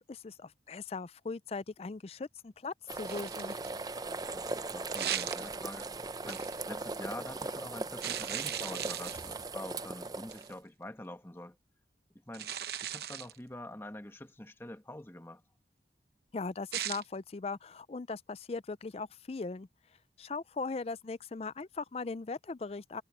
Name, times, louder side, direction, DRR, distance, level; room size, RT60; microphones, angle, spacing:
voice 1, 0.0-3.6 16.3-19.7 20.2-23.0, left 4 dB, 35° left, 0.4 m, -39 dB
sound 1, 2.9-10.5, right 3 dB, 20° right, 0.6 m, -39 dB
sound 2, 3.1-3.8 4.9-5.8 6.3-6.6 8.0-9.5 10.3-10.5 12.3-13.4 16.7-17.0, right 10 dB, 60° right, 0.9 m, -37 dB
voice 2, 4.3-11.6 12.3-12.5 12.8-15.4, left 1 dB, 15° left, 1.3 m, -46 dB
head